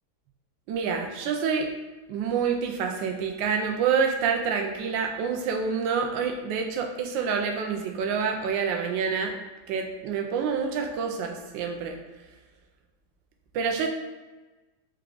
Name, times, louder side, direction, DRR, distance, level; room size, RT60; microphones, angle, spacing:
voice 1, 0.7-1.7 2.1-9.3 9.7-12.0 13.5-13.9, right 6 dB, 75° right, 3 dB, 1.2 m, -27 dB
4.7 x 2.3 x 3.8 m, 1.2 s
omnidirectional pair, 2.1 m